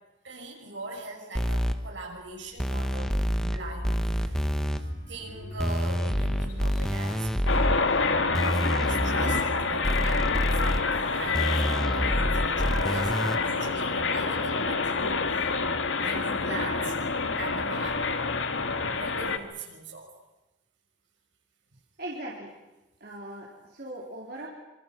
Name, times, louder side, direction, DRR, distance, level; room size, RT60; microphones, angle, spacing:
voice 1, 0.2-4.8 5.1-7.3 8.4-16.9 17.4-18.1 18.9-20.1, right 2 dB, 75° right, 1 dB, 6.7 m, -40 dB
sound 1, 1.4-1.7 2.6-3.6 3.8-4.8 5.6-7.8 8.3-9.4 9.8-10.8 11.3-13.4, equal, 5° left, 1.2 m, -27 dB
sound 2, 2.3-12.7 13.2-14.4, equal, 55° left, 5.9 m, -44 dB
sound 3, 7.5-19.4, left 4 dB, 80° left, 1.8 m, -27 dB
voice 2, 22.0-22.5 23.0-24.5, right 1 dB, 50° right, -3 dB, 3.9 m, -39 dB
26.5 x 25.0 x 6.2 m, 1.0 s
head